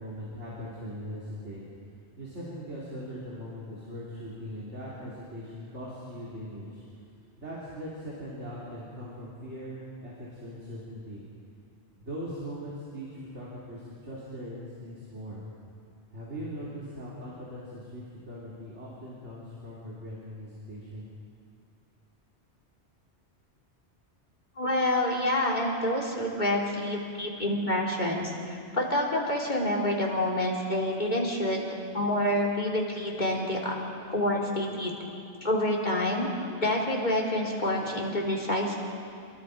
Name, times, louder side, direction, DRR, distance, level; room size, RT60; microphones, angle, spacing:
voice 1, 0.0-1.6 2.2-6.8 7.4-11.2 12.0-15.4 16.1-21.1, equal, 80° right, -7 dB, 3.9 m, -40 dB
voice 2, 24.6-31.6 31.9-33.7 34.1-34.9 35.4-36.3 36.6-38.8, left 1 dB, 40° left, -2 dB, 3.4 m, -27 dB
28.5 x 21.5 x 5.1 m, 2.4 s
omnidirectional pair, 1.2 m